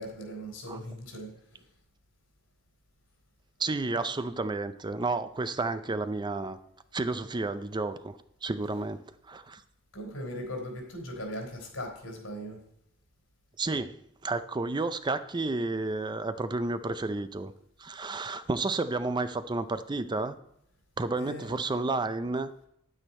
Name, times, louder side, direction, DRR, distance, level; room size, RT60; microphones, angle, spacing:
voice 1, 0.0-1.7 9.9-12.6 21.2-21.6, equal, 90° left, 1 dB, 3.8 m, -39 dB
voice 2, 3.6-6.6 6.9-8.2 8.4-9.0 9.3-9.6 13.6-17.5 17.8-20.4 21.0-22.5, right 3 dB, 20° right, 11 dB, 0.5 m, -31 dB
9.8 x 9.1 x 4.3 m, 0.73 s
head